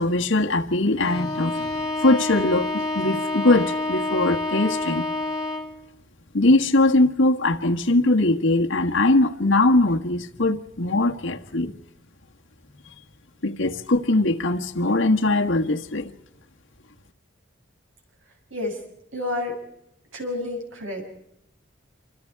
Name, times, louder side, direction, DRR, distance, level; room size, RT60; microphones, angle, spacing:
voice 1, 0.0-5.0 6.3-11.7 13.4-16.1, left 2 dB, 70° left, 1.6 m, -21 dB
Bowed string instrument, 1.0-5.8, left 2 dB, 20° left, 2.0 m, -28 dB
voice 2, 19.1-19.6 20.1-21.0, left 2 dB, 75° right, 6.9 m, -29 dB
28.0 x 25.0 x 4.7 m
head